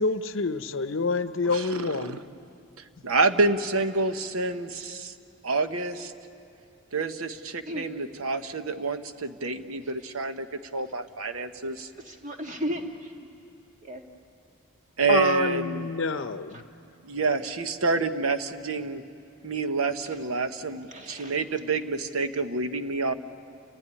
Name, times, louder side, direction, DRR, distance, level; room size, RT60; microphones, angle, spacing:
voice 1, 0.0-2.2 15.1-16.6, left 3 dB, 60° left, 11 dB, 0.7 m, -27 dB
voice 2, 1.4-2.2 3.0-5.1 5.4-6.1 6.9-10.5 10.7-11.9 15.0-15.9 17.0-19.0 19.4-23.1, right 3 dB, 85° right, 9 dB, 1.0 m, -28 dB
voice 3, 12.0-13.1 13.8-14.0 16.5-16.6 20.9-21.4, equal, 35° right, 3 dB, 1.8 m, -35 dB
29.5 x 15.5 x 9.8 m, 2.6 s
head